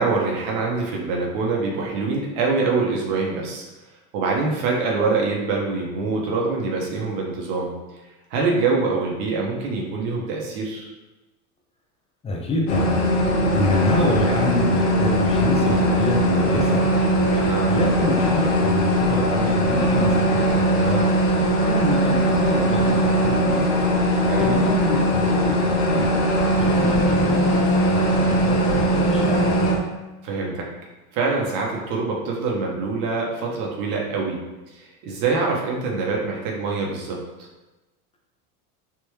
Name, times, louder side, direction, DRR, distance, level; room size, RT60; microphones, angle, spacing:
voice 1, 0.0-3.6 4.1-7.7 8.3-10.9 17.2-17.7 24.1-24.5 30.2-30.7 31.1-34.4 34.7-37.2, right 4 dB, 60° right, -1 dB, 0.9 m, -24 dB
voice 2, 12.2-13.1 13.5-16.9 17.7-21.1 21.6-23.7 24.4-26.2 26.6-27.5 27.9-29.6, left 1 dB, 15° left, 0 dB, 0.4 m, -27 dB
sound 1, 12.7-29.8, equal, 70° left, 1.0 m, -20 dB
3.4 x 2.6 x 3.0 m, 1.1 s
supercardioid pair, 115°, 44 cm